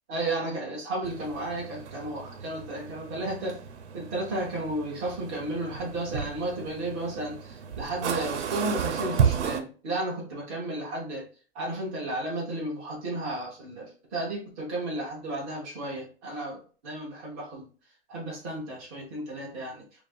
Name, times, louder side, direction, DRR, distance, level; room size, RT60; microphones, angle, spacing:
voice 1, 0.1-3.6 3.9-11.2 11.5-17.7 18.1-19.8, right 2 dB, 10° right, -4 dB, 0.4 m, -33 dB
sound 1, 1.0-9.6, right 7 dB, 90° right, 0.7 m, -33 dB
5.2 x 2.3 x 2.3 m, 0.38 s
hypercardioid pair, 175°, 34 cm